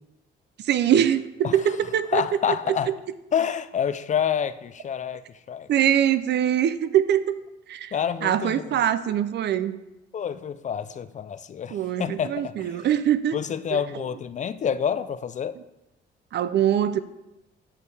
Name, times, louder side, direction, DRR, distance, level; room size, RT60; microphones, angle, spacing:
voice 1, 0.6-2.2 2.7-2.9 5.7-7.4 7.7-7.9 8.2-9.8 11.7-13.4 13.7-14.0 16.3-17.0, right 10 dB, 60° right, 0.4 m, -23 dB
voice 2, 2.1-2.9 3.3-5.2 5.5-5.7 7.9-8.8 10.1-12.7 13.3-15.6, left 8 dB, 40° left, 0.4 m, -28 dB
7.2 x 6.5 x 3.4 m
cardioid pair, 90°, 20 cm